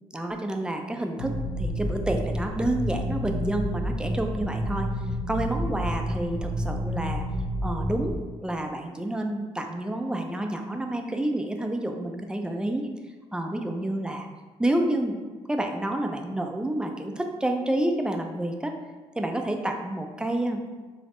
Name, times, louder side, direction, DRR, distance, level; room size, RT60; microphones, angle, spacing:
voice 1, 0.1-4.9 5.3-7.2 7.6-8.2 8.4-12.9 13.3-14.3 14.6-15.2 15.5-18.8 19.2-20.6, right 1 dB, 5° right, 3 dB, 0.4 m, -29 dB
sound 1, 1.2-8.2, equal, 55° left, 0.4 m, -30 dB
3.5 x 2.0 x 3.7 m, 1.3 s
cardioid pair, 70°, 12 cm